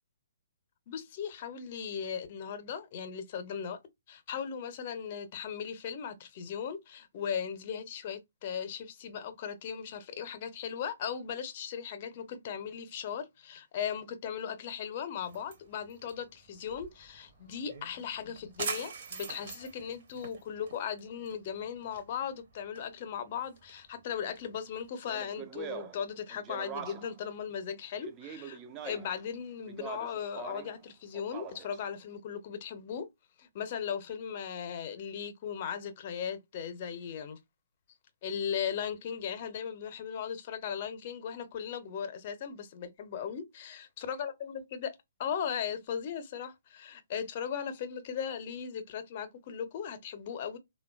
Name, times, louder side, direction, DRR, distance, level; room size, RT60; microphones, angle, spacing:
voice 1, 0.9-3.8 4.1-28.6 28.8-33.1 33.4-37.4 38.2-44.9 45.2-50.6, left 8 dB, 40° left, 0.6 m, -37 dB
sound 1, 15.2-24.9, right 5 dB, 45° right, 0.8 m, -45 dB
Speech, 25.0-27.2 28.0-29.2 29.7-30.8 31.1-31.8, right 8 dB, 20° right, 0.4 m, -43 dB
3.5 x 2.2 x 2.2 m
figure-of-eight pair, 130°, 0 cm